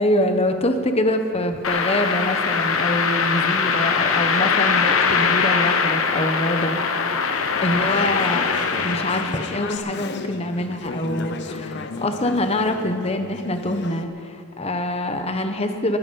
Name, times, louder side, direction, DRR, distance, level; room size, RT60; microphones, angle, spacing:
voice 1, 0.0-6.8 7.1-16.0, left 1 dB, 30° left, 7 dB, 1.1 m, -25 dB
sound 1, 1.6-9.7, left 5 dB, 75° left, 1.1 m, -22 dB
Conversation / Chatter, 7.3-14.0, left 3 dB, 55° left, 0.8 m, -34 dB
20.5 x 11.0 x 5.5 m, 2.4 s
head